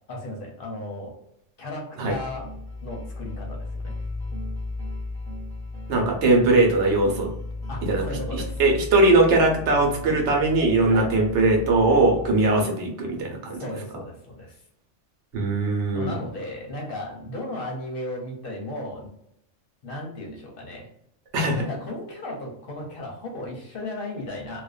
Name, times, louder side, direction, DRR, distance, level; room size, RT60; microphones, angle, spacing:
voice 1, 0.1-1.2 1.6-2.5 2.8-3.9 7.7-8.6 10.9-11.1 13.6-14.6 15.9-19.1 19.8-20.9 21.5-24.6, left 1 dB, 55° left, -1 dB, 0.7 m, -35 dB
sound 1, 2.1-12.7, left 2 dB, 5° left, 0.9 m, -35 dB
voice 2, 5.9-7.3 7.9-8.0 8.3-13.6 15.3-16.2 21.3-21.6, right 2 dB, 70° right, 1 dB, 1.0 m, -20 dB
2.4 x 2.2 x 2.3 m, 0.74 s
omnidirectional pair, 1.3 m